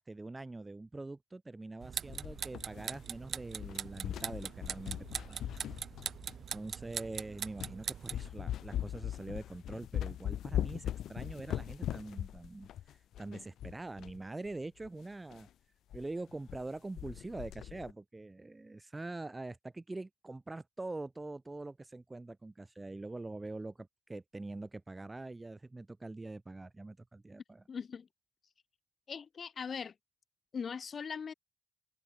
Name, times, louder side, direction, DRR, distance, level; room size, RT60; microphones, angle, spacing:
voice 1, 0.0-5.0 5.3-5.8 6.5-15.5 15.9-27.6, right 2 dB, 20° right, 2.7 m, -44 dB
sound 1, 1.8-8.3, right 8 dB, 55° right, 1.1 m, -41 dB
sound 2, 2.1-3.2 3.5-6.5 7.1-7.2 7.6-7.8 8.1-14.2 14.5-14.6 14.8-14.9 15.3-15.5 15.9-16.0 16.3-16.7 17.0-17.9, left 11 dB, 75° left, 0.6 m, -40 dB
voice 2, 27.7-28.1 29.1-29.9 30.5-31.3, left 6 dB, 45° left, 2.7 m, -40 dB
cardioid pair, 90°, 0 cm